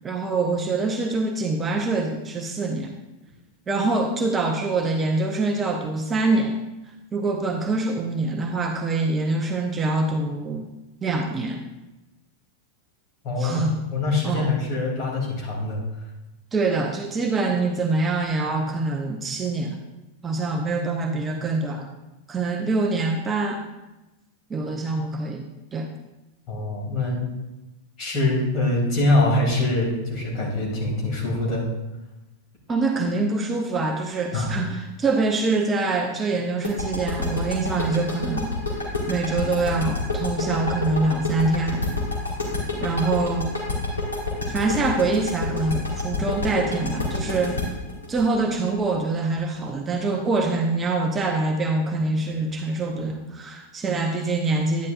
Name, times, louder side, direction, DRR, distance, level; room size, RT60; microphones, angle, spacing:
voice 1, 0.0-3.0 3.7-6.6 7.1-10.7 11.0-11.6 13.4-13.8 14.2-14.4 16.5-19.8 20.2-22.0 22.3-23.6 24.5-25.9 32.7-38.8 39.1-41.9 42.8-43.5 44.5-47.6 48.1-54.9, right 3 dB, 20° right, 3 dB, 0.8 m, -25 dB
voice 2, 13.2-15.8 26.5-27.2 28.0-31.6 34.3-34.5, left 2 dB, 40° left, -2 dB, 3.0 m, -24 dB
sound 1, 36.6-49.4, left 3 dB, 75° left, 2.1 m, -28 dB
10.5 x 9.7 x 2.5 m, 1.0 s
figure-of-eight pair, 90°, 0 cm